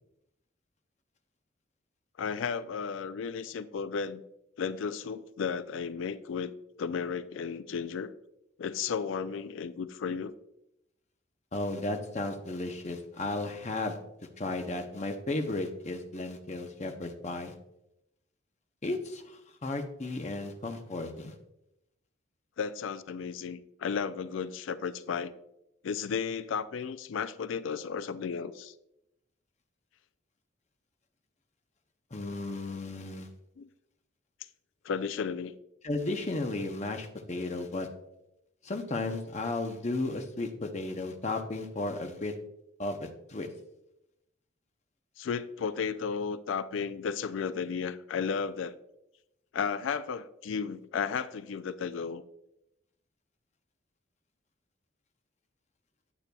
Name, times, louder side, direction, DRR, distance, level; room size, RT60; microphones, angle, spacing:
voice 1, 2.2-4.2 4.6-6.5 6.8-8.1 8.6-10.3 22.6-25.3 25.8-28.7 33.6-33.7 34.8-35.5 45.2-48.8 49.5-52.2, left 6 dB, 75° left, 14 dB, 0.4 m, -34 dB
voice 2, 11.5-14.0 14.4-17.5 18.8-21.3 32.1-33.3 35.8-37.9 38.6-42.3 42.8-43.5, left 2 dB, 35° left, 5 dB, 0.7 m, -34 dB
9.1 x 8.4 x 2.3 m, 0.85 s
head